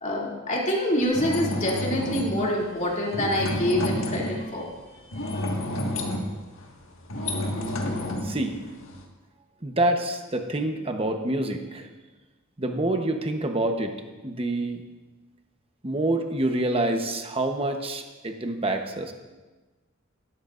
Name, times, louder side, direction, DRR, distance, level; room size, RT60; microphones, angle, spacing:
voice 1, 0.0-4.7 5.1-5.4, left 1 dB, 35° left, -3 dB, 2.7 m, -26 dB
sound 1, 1.0-2.3 3.1-4.5 5.1-9.0, left 1 dB, 75° left, 1.7 m, -30 dB
voice 2, 8.2-8.6 9.6-11.9 12.6-14.0 14.2-14.8 15.8-19.1, right 1 dB, 30° right, 5 dB, 1.0 m, -27 dB
18.0 x 13.5 x 2.6 m, 1.2 s
head